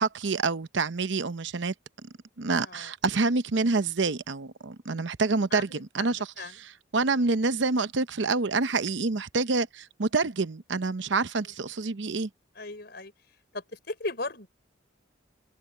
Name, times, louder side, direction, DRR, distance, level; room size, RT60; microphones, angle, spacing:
voice 1, 0.0-1.7 2.4-5.7 5.9-12.3, right 3 dB, 75° right, 0.8 m, -27 dB
voice 2, 12.6-13.1 13.5-14.5, left 2 dB, 55° left, 5.1 m, -36 dB
head